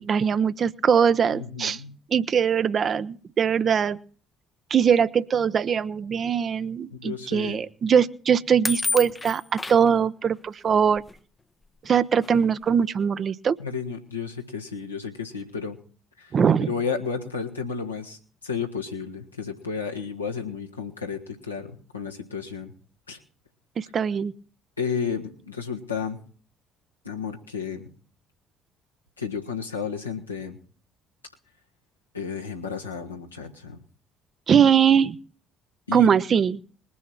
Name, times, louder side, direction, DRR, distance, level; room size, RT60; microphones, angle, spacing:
voice 1, 0.0-1.8 2.1-4.0 4.7-11.0 11.8-13.6 16.3-16.7 23.8-24.3 34.5-35.2 35.9-36.6, right 7 dB, 40° right, 14 dB, 0.7 m, -21 dB
voice 2, 1.3-1.9 6.9-7.6 13.6-15.8 16.2-16.3 16.7-18.2 18.4-22.7 23.1-23.2 24.8-26.2 27.0-27.9 29.2-30.6 32.1-33.8 35.9-36.1, left 5 dB, 85° left, 0 dB, 1.5 m, -32 dB
sound 1, 8.6-9.9 11.0-11.1 11.8-11.9 12.2-12.6, left 3 dB, 20° left, 0.7 m, -29 dB
20.5 x 7.1 x 6.0 m, 0.41 s
figure-of-eight pair, 50°, 0 cm